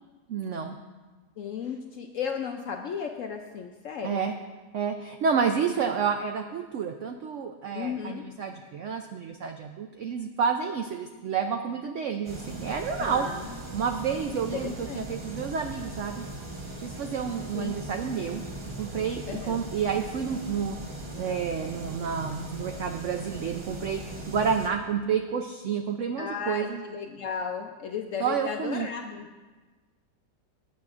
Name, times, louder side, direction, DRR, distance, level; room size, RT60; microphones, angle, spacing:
voice 1, 0.3-0.7 4.0-4.4 4.7-13.3 13.7-16.3 16.8-18.4 18.8-20.8 21.1-26.8 28.2-28.9, right 6 dB, 80° right, 5 dB, 0.6 m, -30 dB
voice 2, 1.4-4.3 7.7-8.3 13.0-13.4 14.5-15.1 17.5-17.8 19.3-19.6 26.2-29.3, left 6 dB, 70° left, 4 dB, 0.7 m, -35 dB
sound 1, 12.2-24.7, right 1 dB, 25° right, 0.6 m, -39 dB
16.0 x 8.4 x 2.5 m, 1.3 s
omnidirectional pair, 1.8 m